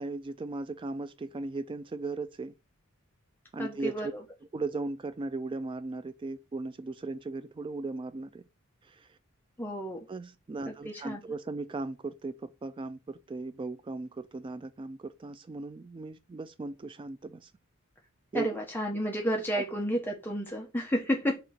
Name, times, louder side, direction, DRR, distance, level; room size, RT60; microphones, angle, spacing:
voice 1, 0.0-2.5 3.5-4.1 4.5-8.4 8.8-9.2 10.1-17.5 18.3-18.6 19.5-19.6, right 3 dB, 25° right, 0.3 m, -37 dB
voice 2, 3.6-4.1 9.6-10.0 10.7-11.2 18.3-21.4, equal, 10° left, 0.9 m, -31 dB
6.7 x 2.9 x 5.8 m
head